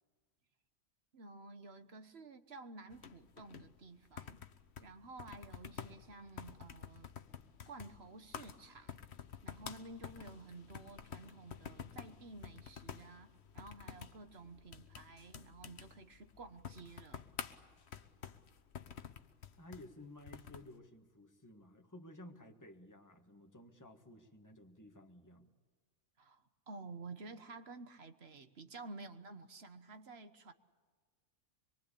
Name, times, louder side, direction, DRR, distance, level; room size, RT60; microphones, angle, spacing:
voice 1, 1.1-4.4 4.8-7.1 7.7-9.0 9.4-17.3 26.2-30.5, right 3 dB, 55° right, 9 dB, 1.5 m, -52 dB
sound 1, 2.9-20.7, left 7 dB, 60° left, 1.2 m, -50 dB
voice 2, 19.6-25.5, left 1 dB, 15° left, 4 dB, 1.7 m, -55 dB
24.5 x 23.0 x 8.5 m, 1.5 s
omnidirectional pair, 1.3 m